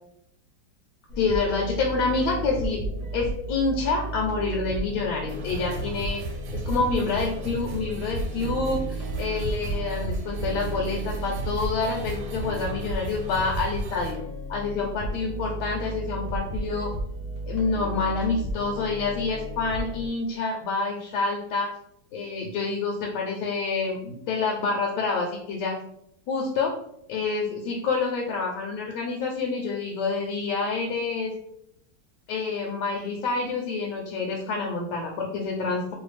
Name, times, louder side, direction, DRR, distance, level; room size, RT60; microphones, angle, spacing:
sound 1, 1.1-20.1, right 1 dB, 60° left, 0.8 m, -34 dB
voice 1, 1.2-2.8 3.1-6.2 6.5-14.2 14.5-16.9 17.5-21.7 22.1-25.8 26.3-26.7 27.1-31.3 32.3-35.9, left 4 dB, 75° left, 0 dB, 1.1 m, -27 dB
sound 2, 5.3-14.1, right 4 dB, 75° right, 1.2 m, -36 dB
3.1 x 2.2 x 3.2 m, 0.74 s
omnidirectional pair, 2.1 m